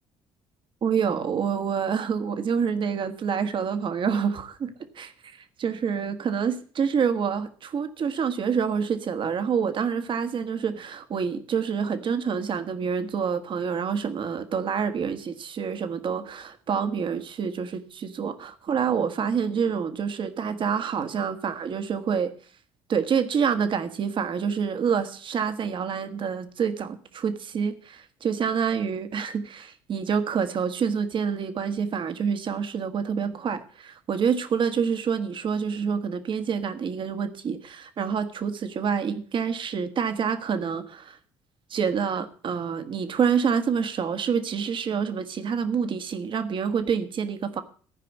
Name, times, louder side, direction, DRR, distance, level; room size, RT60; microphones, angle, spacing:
voice 1, 0.8-5.1 5.6-22.3 22.9-41.2 41.7-47.6, right 6 dB, 50° right, 9 dB, 1.6 m, -27 dB
14.5 x 5.0 x 8.2 m, 0.41 s
supercardioid pair, 65°, 11 cm